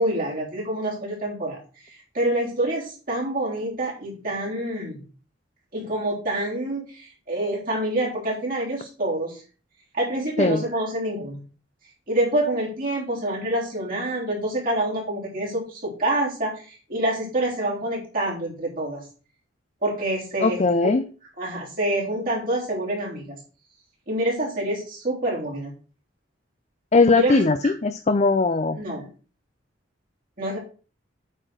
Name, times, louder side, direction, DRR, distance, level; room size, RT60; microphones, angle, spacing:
voice 1, 0.0-1.6 1.8-5.0 5.7-9.4 9.9-11.4 12.1-19.0 19.8-20.9 21.4-23.4 24.1-25.7 27.1-27.7 28.7-29.1 30.4-30.6, right 1 dB, 45° right, -5 dB, 3.6 m, -27 dB
voice 2, 20.4-21.0 26.9-28.8, left 3 dB, 35° left, 10 dB, 0.5 m, -19 dB
8.9 x 4.4 x 6.3 m, 0.38 s
head